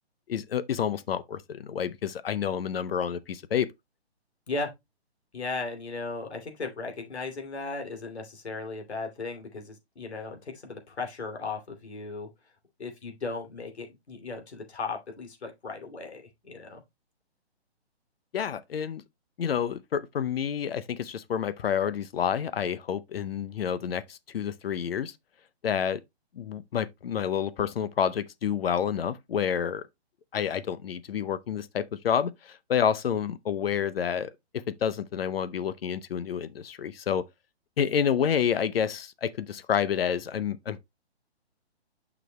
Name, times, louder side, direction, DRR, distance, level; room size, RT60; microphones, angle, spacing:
voice 1, 0.3-3.7 18.3-19.0 19.4-25.1 25.6-26.0 26.4-29.8 30.3-37.2 37.8-40.8, left 8 dB, 60° left, 0.7 m, -29 dB
voice 2, 5.3-12.3 12.8-16.8, left 3 dB, 75° left, 2.8 m, -36 dB
9.1 x 6.1 x 2.2 m
hypercardioid pair, 145°, 33 cm